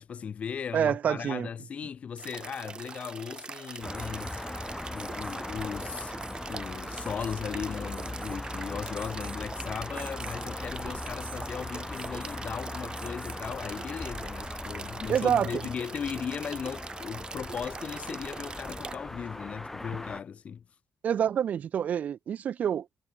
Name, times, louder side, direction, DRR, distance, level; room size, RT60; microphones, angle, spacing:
voice 1, 0.0-4.4 4.9-20.6, left 7 dB, 45° left, 3.0 m, -37 dB
voice 2, 0.7-1.5 15.1-15.6 21.0-22.9, right 9 dB, 55° right, 0.7 m, -27 dB
sound 1, 2.2-19.0, right 5 dB, 30° right, 2.7 m, -42 dB
sound 2, 3.8-20.2, left 2 dB, 10° left, 0.5 m, -39 dB
Alarm, 3.9-4.4 4.9-5.4 5.9-6.4 6.9-7.4 7.9-8.5 8.9-9.4 9.9-10.4 10.9-11.4 11.9-12.4 12.9-13.4 15.2-15.3, right 10 dB, 75° right, 3.2 m, -52 dB
wide cardioid pair, 170°, 3 cm